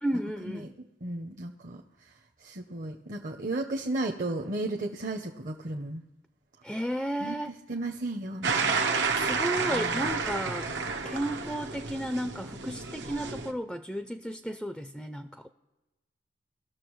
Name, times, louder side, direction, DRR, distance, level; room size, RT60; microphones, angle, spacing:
voice 1, 0.0-0.7 6.6-7.6 9.1-10.7 11.0-15.5, equal, ahead, 8 dB, 0.4 m, -33 dB
voice 2, 1.0-1.8 2.4-6.0 7.2-8.9 9.7-10.0, right 2 dB, 50° right, 1 dB, 0.8 m, -34 dB
sound 1, 8.4-13.5, right 4 dB, 90° right, 1.0 m, -30 dB
18.5 x 6.7 x 3.1 m, 1.1 s
head